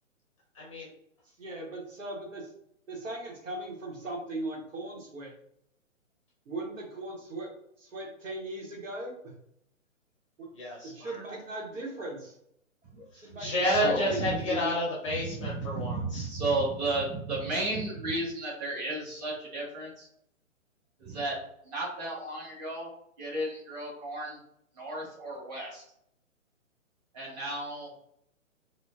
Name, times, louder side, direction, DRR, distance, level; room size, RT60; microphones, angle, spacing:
voice 1, 0.5-0.9 10.6-11.2 13.1-16.3, left 1 dB, 25° left, -3 dB, 0.6 m, -30 dB
voice 2, 1.4-2.5 2.9-5.3 6.5-7.5 7.9-9.3 10.4-10.5 10.9-12.4 13.1-14.7, right 2 dB, 65° right, 0 dB, 1.2 m, -38 dB
voice 3, 13.4-14.4 15.1-20.1 21.0-21.4 21.6-22.9 23.2-24.4 24.7-25.8 27.1-27.9, right 2 dB, 30° right, -5 dB, 1.4 m, -33 dB
3.8 x 2.2 x 2.4 m, 0.73 s
figure-of-eight pair, 135°, 41 cm